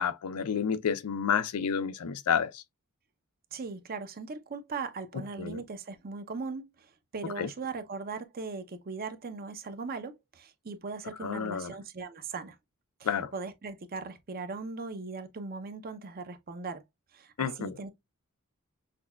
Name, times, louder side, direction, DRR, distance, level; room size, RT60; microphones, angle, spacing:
voice 1, 0.0-2.6 5.4-5.6 7.4-7.5 11.2-11.7 13.0-13.3 17.4-17.7, left 7 dB, 80° left, 0.5 m, -30 dB
voice 2, 3.5-12.6 13.0-16.8 17.1-17.9, right 4 dB, 40° right, 0.6 m, -39 dB
5.9 x 2.2 x 2.3 m
head